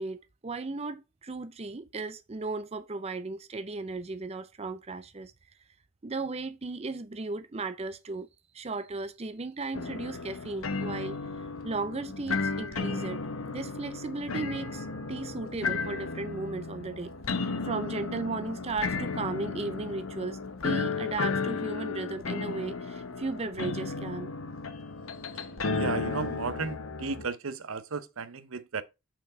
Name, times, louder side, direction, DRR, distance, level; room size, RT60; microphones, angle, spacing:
voice 1, 0.0-5.3 6.0-8.3 8.5-13.2 13.5-24.3, right 3 dB, 30° right, 0.5 m, -36 dB
sound 1, 9.7-27.3, left 4 dB, 85° left, 1.0 m, -34 dB
voice 2, 25.7-28.8, right 4 dB, 85° right, 0.8 m, -34 dB
5.9 x 4.5 x 4.4 m
head